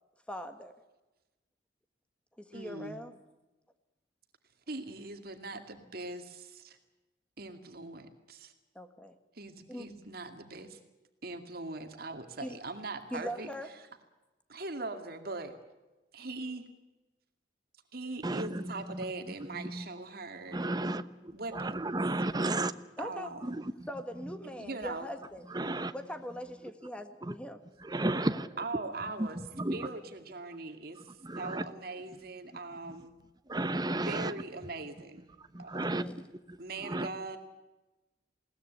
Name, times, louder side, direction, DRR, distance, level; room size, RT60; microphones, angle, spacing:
voice 1, 0.3-0.7 2.4-3.1 8.8-9.2 9.7-9.9 12.4-12.6 13.1-13.7 23.0-23.3 23.9-25.5 25.9-27.6 36.0-36.2, equal, 5° left, 8 dB, 1.7 m, -41 dB
voice 2, 2.5-3.0 4.7-6.8 7.4-8.5 9.3-10.8 11.2-13.5 14.5-15.5 16.1-16.6 17.9-20.7 21.3-21.9 23.0-23.6 24.6-25.2 28.6-29.4 29.7-31.1 31.4-33.2 33.9-35.3 35.6-35.8 36.6-37.4, right 2 dB, 60° right, 6 dB, 2.2 m, -41 dB
voice 3, 18.2-19.1 19.5-19.9 20.5-22.7 23.4-23.9 25.5-25.9 27.2-27.3 27.8-28.6 29.2-29.9 30.9-31.7 32.9-33.0 33.5-34.3 34.6-34.7 35.4-37.1, right 2 dB, 25° right, 12 dB, 1.0 m, -34 dB
21.0 x 18.5 x 8.1 m, 1.1 s
head